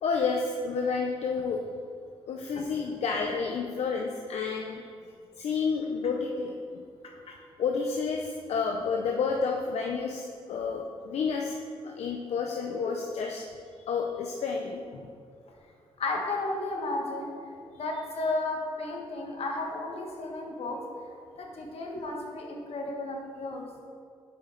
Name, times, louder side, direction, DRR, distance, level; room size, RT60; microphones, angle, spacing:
voice 1, 0.0-1.6 2.3-4.8 5.4-6.9 7.6-11.6 11.8-13.5 13.9-15.1, left 5 dB, 80° left, 1 dB, 0.5 m, -30 dB
voice 2, 7.0-7.4 16.0-20.9 21.4-23.7, left 2 dB, 65° left, 1 dB, 1.2 m, -33 dB
7.5 x 5.2 x 3.8 m, 2.2 s
cardioid pair, 70°, 11 cm